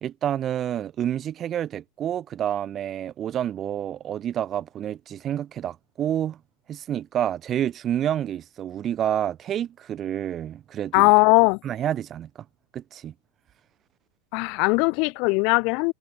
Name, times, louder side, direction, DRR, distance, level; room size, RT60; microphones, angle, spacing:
voice 1, 0.0-6.4 6.7-11.1 11.6-12.3 12.7-13.1, right 10 dB, 30° right, 1.0 m, -28 dB
voice 2, 10.9-11.6 14.3-15.9, left 32 dB, 45° left, 0.3 m, -19 dB
figure-of-eight pair, 90°, 0 cm